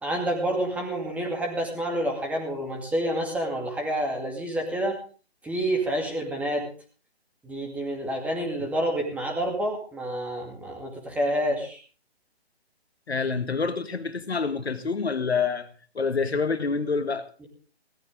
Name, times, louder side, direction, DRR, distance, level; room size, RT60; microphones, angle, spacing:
voice 1, 0.0-5.0 5.4-6.7 7.4-11.8 17.4-17.5, right 1 dB, 5° right, 1 dB, 2.4 m, -28 dB
voice 2, 13.1-15.7 16.0-17.2, left 5 dB, 75° left, 9 dB, 1.8 m, -27 dB
17.5 x 13.5 x 3.8 m, 0.38 s
figure-of-eight pair, 145°, 32 cm